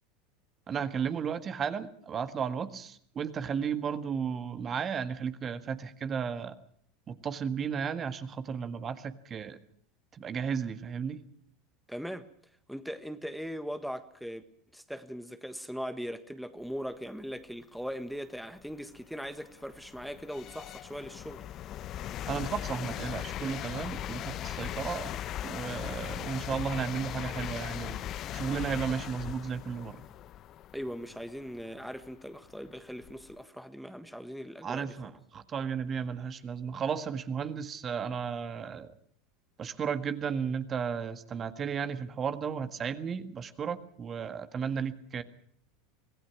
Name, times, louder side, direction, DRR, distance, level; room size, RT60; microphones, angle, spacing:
voice 1, 0.7-6.5 7.1-9.6 10.1-11.2 22.3-25.1 25.4-28.0 28.3-30.0 34.6-38.9 39.6-45.2, right 6 dB, 30° right, 1.7 m, -34 dB
voice 2, 11.9-12.3 12.7-14.4 14.7-21.4 30.7-35.0, equal, ahead, 1.5 m, -40 dB
sound 1, 17.9-18.0 18.6-33.4, left 12 dB, 40° left, 0.8 m, -39 dB
25.5 x 19.0 x 6.0 m
figure-of-eight pair, 80°, 0 cm